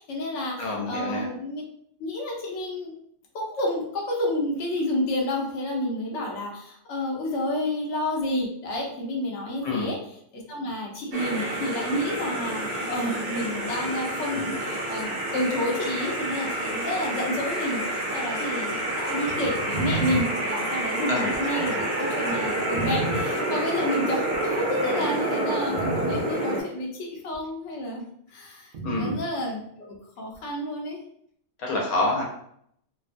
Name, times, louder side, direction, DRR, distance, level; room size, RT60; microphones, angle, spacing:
voice 1, 0.0-1.6 2.0-3.0 3.3-10.0 10.3-28.0 28.3-31.0, left 1 dB, 60° left, -1 dB, 0.9 m, -30 dB
voice 2, 0.6-1.3 9.6-9.9 21.1-21.9 28.8-29.2 31.6-32.2, left 2 dB, 75° left, -1 dB, 1.2 m, -28 dB
sound 1, 11.1-26.6, right 1 dB, 50° right, 0.8 m, -28 dB
sound 2, 19.3-23.2 24.1-24.8 25.3-25.4 25.7-26.2 27.3-27.4 28.7-29.2 30.3-30.4, right 3 dB, 85° right, 0.4 m, -32 dB
2.9 x 2.1 x 2.5 m, 0.68 s
omnidirectional pair, 1.5 m